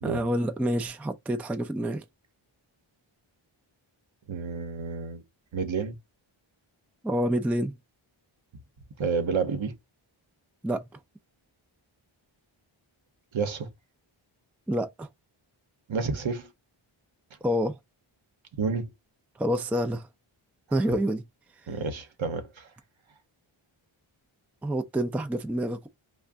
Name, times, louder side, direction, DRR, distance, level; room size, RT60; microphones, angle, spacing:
voice 1, 0.0-2.0 7.0-7.8 10.6-10.9 14.7-15.1 17.4-17.8 19.4-20.1 20.7-21.2 24.6-25.9, equal, 5° right, 0.3 m, -27 dB
voice 2, 4.3-5.2 5.5-6.0 9.0-9.8 13.3-13.7 15.9-16.5 18.6-18.9 21.7-22.7, right 5 dB, 65° right, 0.9 m, -30 dB
2.5 x 2.2 x 3.4 m
wide cardioid pair, 90°, 50 cm